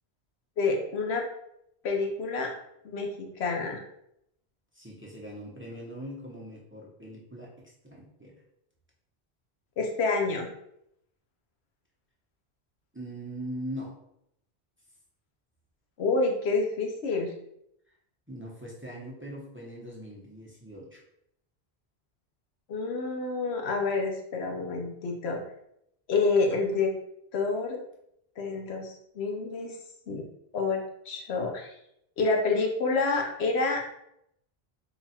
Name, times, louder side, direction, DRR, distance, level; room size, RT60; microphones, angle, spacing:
voice 1, 0.6-1.3 1.8-2.5 2.8-3.8 9.8-10.5 16.0-17.3 22.7-25.4 26.1-26.9 27.3-27.8 28.4-29.8 30.1-30.2 30.5-30.8 31.1-31.8 32.2-33.8, left 3 dB, 85° left, 2 dB, 1.0 m, -28 dB
voice 2, 4.7-7.5 7.8-8.3 12.9-14.0 18.3-21.0, equal, 15° right, -4 dB, 0.7 m, -41 dB
3.9 x 2.3 x 4.1 m, 0.76 s
omnidirectional pair, 1.1 m